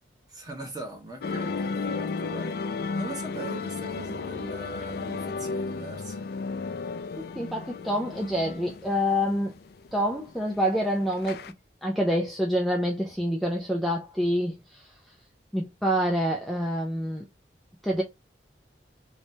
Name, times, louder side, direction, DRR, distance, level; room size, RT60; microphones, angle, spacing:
voice 1, 0.3-6.3, right 2 dB, 20° right, 1.2 m, -41 dB
sound 1, 1.2-11.5, left 4 dB, 60° left, 0.4 m, -34 dB
voice 2, 7.4-9.5 9.9-11.4 11.8-14.9 15.5-17.2 17.8-18.0, equal, ahead, 0.5 m, -27 dB
3.2 x 3.1 x 2.7 m
head